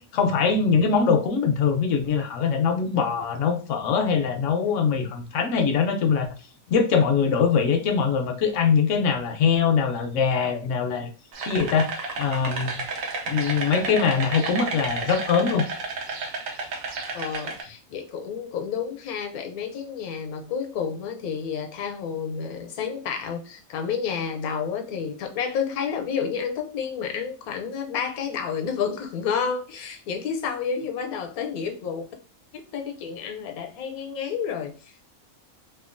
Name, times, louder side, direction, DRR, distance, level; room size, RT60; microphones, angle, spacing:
voice 1, 0.0-6.3 6.7-11.1 11.5-12.9 13.3-15.7 17.4-17.5, left 6 dB, 70° left, 0.8 m, -22 dB
sound 1, 11.3-17.6, right 3 dB, 70° right, 1.0 m, -32 dB
voice 2, 17.1-32.0 32.5-34.9, left 6 dB, 85° left, 1.1 m, -30 dB
2.9 x 2.3 x 2.5 m
omnidirectional pair, 1.5 m